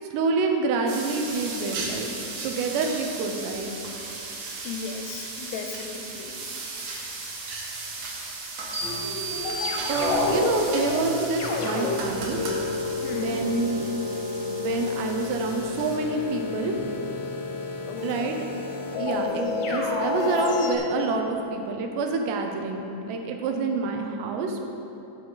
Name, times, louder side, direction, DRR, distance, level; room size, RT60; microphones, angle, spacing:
voice 1, 0.1-2.1 2.4-3.7 9.9-12.4 13.1-13.9 14.5-16.7 18.0-18.5 19.0-24.6, right 3 dB, 80° right, 3 dB, 2.9 m, -27 dB
sound 1, 0.9-16.0, right 3 dB, 65° right, 2.1 m, -37 dB
voice 2, 4.6-6.4 13.0-13.5 17.9-18.4, left 5 dB, 80° left, 5 dB, 2.5 m, -36 dB
sound 2, 8.7-10.5, right 3 dB, 30° right, 1.8 m, -34 dB
sound 3, 8.8-20.8, left 3 dB, 65° left, 2.3 m, -29 dB
12.5 x 7.9 x 3.9 m, 2.9 s
omnidirectional pair, 4.9 m